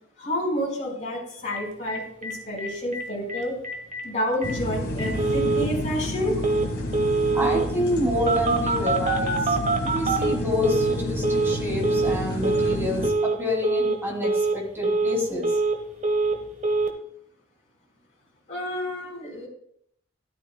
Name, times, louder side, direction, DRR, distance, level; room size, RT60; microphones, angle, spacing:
voice 1, 0.2-3.6 4.0-6.4 18.5-19.5, equal, 40° left, -5 dB, 4.8 m, -29 dB
Telephone, 1.5-1.6 1.9-2.0 2.2-2.3 2.6-3.0 3.3-3.4 3.6-4.0 4.4-4.5 5.0-5.7 6.4-6.7 6.9-7.7 8.3-11.0 11.2-11.6 11.8-12.2 12.4-12.8 13.0-13.4 13.6-14.0 14.2-14.6 14.8-15.8 16.0-16.4 16.6-16.9, right 3 dB, 40° right, 1.3 m, -24 dB
sound 1, 4.4-13.1, left 1 dB, 55° left, 1.9 m, -30 dB
voice 2, 7.3-9.6 9.8-15.5, left 1 dB, 15° right, -2 dB, 2.7 m, -28 dB
13.0 x 12.5 x 2.3 m, 0.71 s
head